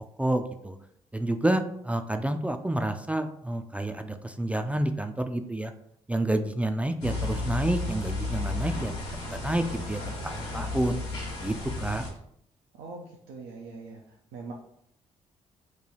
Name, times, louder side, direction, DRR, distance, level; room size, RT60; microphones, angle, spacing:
voice 1, 0.2-0.8 1.1-5.7 6.1-8.9 9.3-11.0 11.4-12.1, right 1 dB, 10° right, 7 dB, 0.3 m, -29 dB
sound 1, 7.0-12.1, left 2 dB, 85° left, 1.1 m, -33 dB
voice 2, 12.8-14.0 14.3-14.5, right 3 dB, 80° right, -1 dB, 0.4 m, -42 dB
3.1 x 2.3 x 3.9 m, 0.72 s
hypercardioid pair, 45°, 16 cm